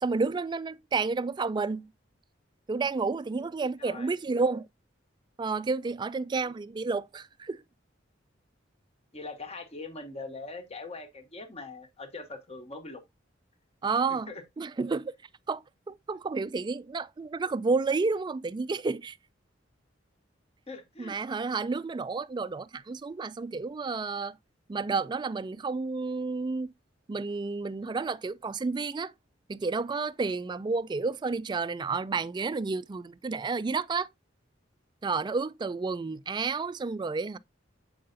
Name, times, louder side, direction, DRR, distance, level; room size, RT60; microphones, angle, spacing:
voice 1, 0.0-1.9 2.7-4.7 5.4-7.6 13.8-15.1 15.5-19.2 21.0-24.4 24.7-26.7 27.1-29.1 29.5-34.1 35.0-37.4, right 4 dB, 25° right, 0.3 m, -31 dB
voice 2, 3.8-4.2 9.1-13.0 14.1-14.4 20.7-21.2, left 3 dB, 30° left, 1.2 m, -42 dB
7.6 x 5.5 x 2.6 m
head